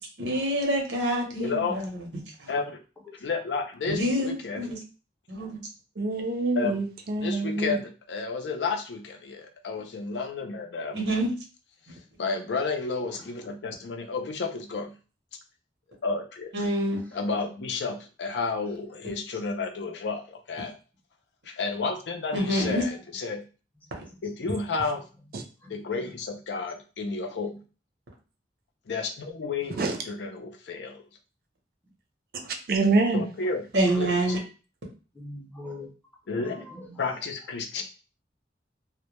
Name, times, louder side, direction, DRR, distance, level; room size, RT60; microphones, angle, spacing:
voice 1, 0.2-1.9 3.9-4.8 5.3-5.6 10.9-11.3 16.5-17.0 22.3-22.8 33.7-34.4, right 1 dB, 80° right, 0 dB, 0.8 m, -26 dB
voice 2, 1.4-1.8 2.5-2.8 3.2-4.7 6.6-6.8 7.2-11.0 11.9-14.9 16.0-16.5 17.1-20.7 21.4-23.4 24.2-25.0 25.7-27.6 28.9-31.0 33.1-33.6 33.9-34.4 36.3-36.7 37.0-37.8, left 4 dB, 75° left, 3 dB, 0.5 m, -31 dB
voice 3, 6.0-7.8 25.3-25.4 29.7-30.0 32.7-33.3, right 3 dB, 55° right, 4 dB, 0.4 m, -25 dB
voice 4, 35.1-35.9 36.3-37.0 37.8-37.9, left 1 dB, 10° left, -2 dB, 0.6 m, -42 dB
2.1 x 2.1 x 2.9 m, 0.35 s
head